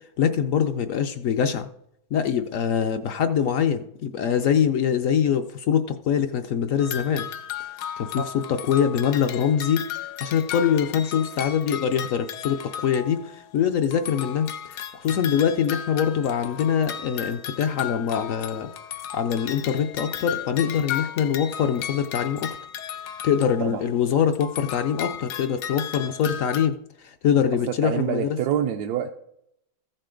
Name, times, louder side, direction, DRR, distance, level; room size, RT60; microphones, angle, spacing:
voice 1, 0.2-1.7 2.1-7.3 8.0-9.8 10.2-18.7 19.1-22.6 23.2-28.4, left 8 dB, 65° left, 7 dB, 0.9 m, -24 dB
sound 1, 6.8-13.6 13.8-24.0 24.3-26.7, left 10 dB, 80° left, 1.2 m, -35 dB
voice 2, 27.7-29.1, right 9 dB, 80° right, 5 dB, 1.1 m, -27 dB
14.5 x 6.7 x 3.8 m, 0.76 s
omnidirectional pair, 1.7 m